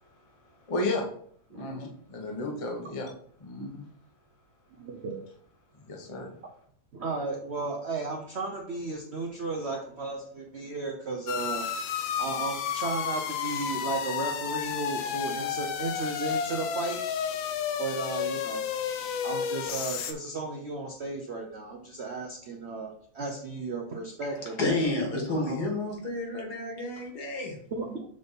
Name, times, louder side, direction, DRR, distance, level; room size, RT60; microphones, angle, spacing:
voice 1, 0.7-1.0 1.5-3.1 3.4-3.8 5.8-6.3, left 2 dB, 25° left, 0 dB, 0.8 m, -33 dB
voice 2, 1.5-1.8 3.6-3.7 4.8-5.2 6.9-11.8 12.2-17.0 17.8-18.6 19.2-24.8 25.3-25.6 27.7-28.1, right 3 dB, 90° right, 1 dB, 0.5 m, -34 dB
sound 1, 11.3-20.1, left 8 dB, 80° left, 1.4 m, -32 dB
voice 3, 24.6-27.6, left 2 dB, 55° left, 0 dB, 2.1 m, -30 dB
6.7 x 3.4 x 4.1 m, 0.62 s
omnidirectional pair, 2.1 m